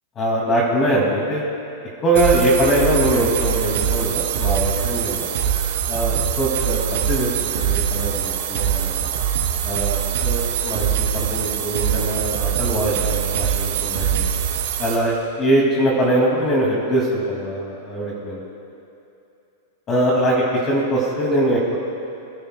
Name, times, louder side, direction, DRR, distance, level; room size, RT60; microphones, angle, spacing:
voice 1, 0.2-1.4 2.0-5.3 5.9-9.1 9.6-14.3 14.8-18.4 19.9-21.8, right 1 dB, 25° left, -3 dB, 2.2 m, -22 dB
sound 1, 2.2-15.0, right 8 dB, 75° right, 3.2 m, -23 dB
25.0 x 10.5 x 2.2 m, 2.8 s
supercardioid pair, 140°, 0 cm